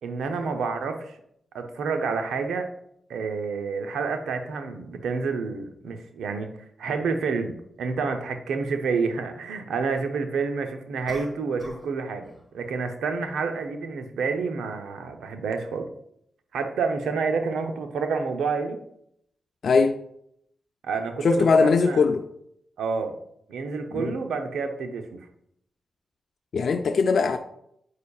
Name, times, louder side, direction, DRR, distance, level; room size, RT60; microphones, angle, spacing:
voice 1, 0.0-1.2 1.5-2.7 3.1-6.5 6.8-12.3 12.5-15.9 16.5-18.8 20.8-22.0 22.8-23.1 23.5-25.3, right 4 dB, 85° right, 0.6 m, -29 dB
sound 1, 7.0-7.1 11.1-12.0 12.2-12.5, right 1 dB, 35° right, 1.5 m, -44 dB
voice 2, 19.6-20.0 21.2-22.2 23.9-24.1 26.5-27.4, left 4 dB, 70° left, 0.4 m, -20 dB
8.3 x 5.2 x 2.3 m
supercardioid pair, 50°, 0 cm